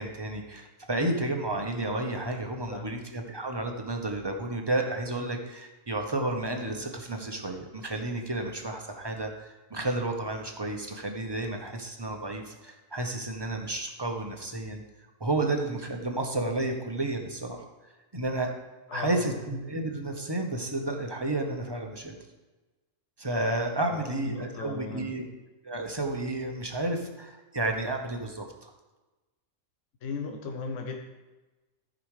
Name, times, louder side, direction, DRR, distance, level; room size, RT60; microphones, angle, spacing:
voice 1, 0.0-14.8 15.2-17.7 18.1-18.5 18.9-22.2 23.2-25.3 25.6-28.7, right 2 dB, 20° right, 3 dB, 0.9 m, -31 dB
voice 2, 18.9-19.3 23.8-25.1 30.0-31.0, left 4 dB, 70° left, 3 dB, 1.2 m, -37 dB
14.0 x 5.1 x 4.9 m, 1.1 s
omnidirectional pair, 1.4 m